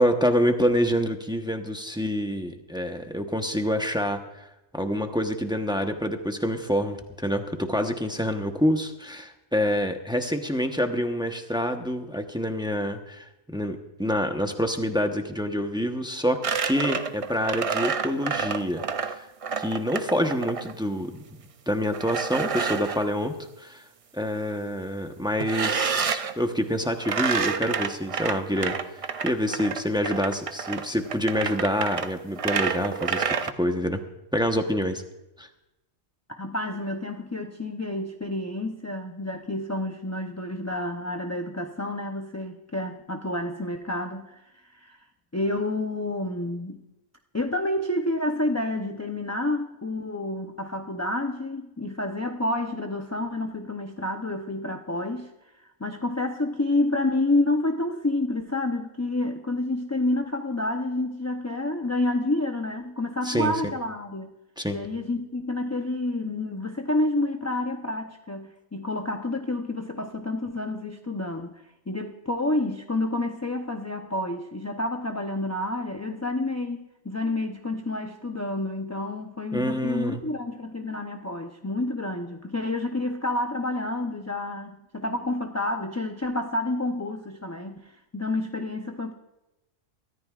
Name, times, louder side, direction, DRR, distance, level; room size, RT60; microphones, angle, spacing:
voice 1, 0.0-4.4 4.7-16.4 16.6-19.2 19.6-21.1 21.7-23.8 24.1-28.8 29.2-34.0 34.3-35.0 35.4-35.5 63.2-63.5 64.6-64.8 79.5-80.2, equal, 5° right, 5 dB, 0.8 m, -27 dB
sound 1, 16.4-20.7 21.9-23.0 25.4-26.3 27.0-33.5, right 6 dB, 60° right, 0.3 m, -29 dB
voice 2, 36.3-45.0 45.3-46.8 47.3-55.3 55.6-64.3 64.7-89.1, left 2 dB, 20° left, 4 dB, 0.5 m, -29 dB
23.5 x 14.0 x 2.4 m, 0.97 s
omnidirectional pair, 1.4 m